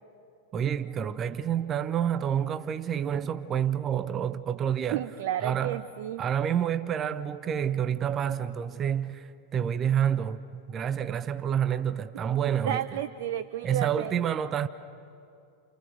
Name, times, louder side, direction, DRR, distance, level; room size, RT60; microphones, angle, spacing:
voice 1, 0.5-5.0 5.4-5.8 6.2-12.8 13.6-14.7, right 9 dB, 25° right, 0.9 m, -28 dB
voice 2, 4.9-6.2 12.6-14.2, right 11 dB, 55° right, 0.7 m, -32 dB
29.5 x 29.0 x 6.7 m
figure-of-eight pair, 90°, 0 cm